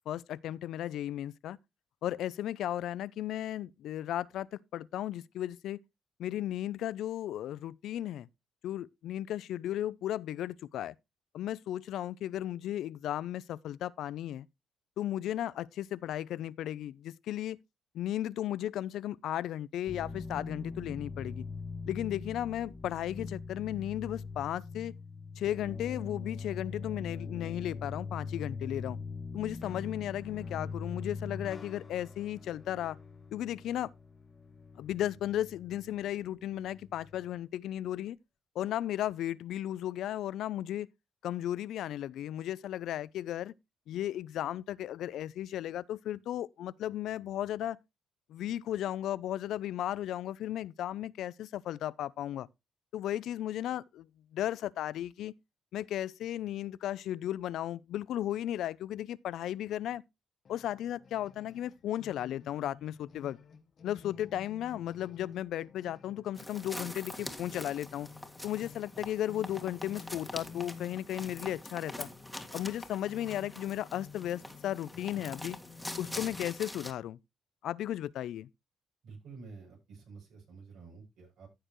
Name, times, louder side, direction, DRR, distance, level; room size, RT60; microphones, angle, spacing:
voice 1, 0.1-1.6 2.0-5.8 6.2-8.3 8.6-10.9 11.3-14.5 15.0-17.6 17.9-21.4 21.9-24.9 25.4-29.0 29.3-33.0 33.3-33.9 34.8-38.2 38.6-40.9 41.2-43.5 43.9-47.8 48.3-52.5 52.9-54.1 54.3-55.3 55.7-60.0 60.5-63.4 63.8-68.1 68.4-72.1 72.5-75.6 76.0-77.2 77.6-78.5, left 12 dB, 80° left, 0.4 m, -35 dB
sound 1, 19.9-37.3, left 4 dB, 35° left, 1.1 m, -42 dB
sound 2, 60.4-76.5, left 6 dB, 50° left, 1.3 m, -52 dB
sound 3, 66.3-76.9, left 1 dB, 5° left, 1.8 m, -44 dB
voice 2, 79.0-81.5, right 4 dB, 75° right, 7.6 m, -50 dB
15.0 x 6.6 x 3.0 m
cardioid pair, 100°, 0 cm